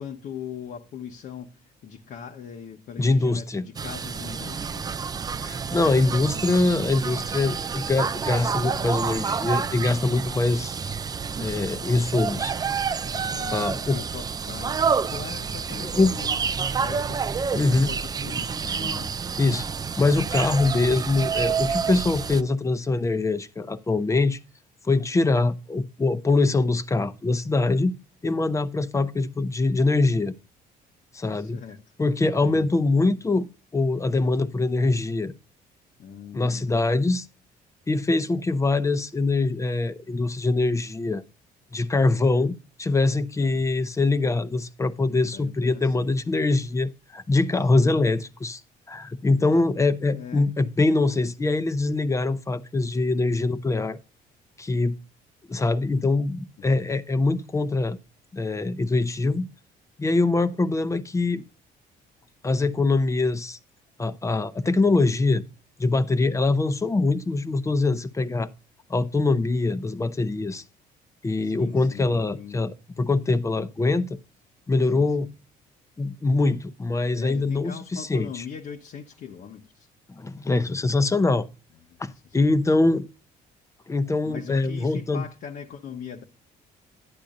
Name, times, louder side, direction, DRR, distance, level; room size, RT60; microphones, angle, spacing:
voice 1, 0.0-5.0 13.1-19.2 31.3-31.9 32.4-32.7 36.0-37.2 43.4-43.7 44.2-44.4 45.1-46.1 47.6-48.0 49.4-49.7 50.1-50.5 56.6-56.8 71.4-72.7 74.9-75.3 77.2-79.9 81.9-82.6 84.2-86.2, left 7 dB, 60° left, 1.0 m, -41 dB
voice 2, 3.0-3.7 5.4-10.8 11.4-12.5 13.5-14.0 15.8-16.1 17.5-17.9 19.4-19.7 20.0-24.4 24.8-28.0 28.2-30.3 31.1-31.6 32.0-35.3 36.3-37.2 37.9-41.2 41.7-48.6 48.9-54.0 54.6-55.0 55.5-58.0 58.3-59.5 60.0-61.4 62.4-63.6 64.0-65.4 65.8-68.5 68.9-70.6 71.2-74.2 74.7-75.3 76.0-78.3 80.1-81.5 82.0-83.1 83.9-85.2, left 3 dB, 20° left, 0.7 m, -23 dB
sound 1, 3.7-22.4, right 6 dB, 25° right, 0.4 m, -29 dB
10.5 x 9.8 x 2.6 m
cardioid pair, 110°, 17 cm